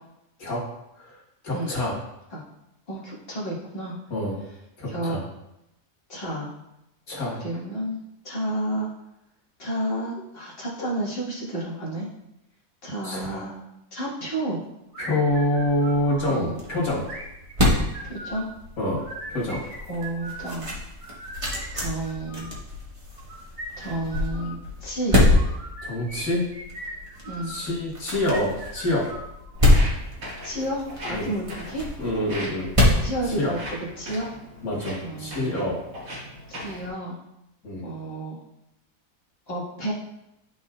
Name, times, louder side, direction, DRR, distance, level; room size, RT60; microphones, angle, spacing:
voice 1, 1.4-2.0 4.1-4.4 4.8-5.2 7.1-7.4 13.0-13.5 15.0-17.1 18.8-19.0 19.3-19.7 25.8-26.5 27.5-29.1 31.1-31.3 32.0-32.7 33.3-33.5 34.6-35.8 37.6-37.8, left 1 dB, 90° left, -4 dB, 2.4 m, -26 dB
voice 2, 2.9-4.0 4.9-5.2 6.1-6.5 7.3-8.9 9.6-12.1 12.8-13.5 13.9-14.6 16.3-16.6 18.0-18.5 19.9-20.7 21.7-22.5 23.8-25.2 27.2-27.5 30.4-31.9 33.0-34.3 35.0-35.7 36.5-37.2 37.8-38.4 39.5-39.9, right 1 dB, 45° left, -6 dB, 2.1 m, -31 dB
sound 1, 14.9-16.4 17.0-18.5 18.9-20.5 21.0-22.6 23.2-24.6 25.3-27.6 28.2-29.7, right 1 dB, 50° right, 1.8 m, -39 dB
sound 2, 15.3-34.0, left 1 dB, 25° right, 1.4 m, -26 dB
Walk footsteps, 29.5-36.9, equal, 85° right, 2.6 m, -39 dB
11.5 x 4.1 x 2.5 m, 0.87 s
omnidirectional pair, 1.5 m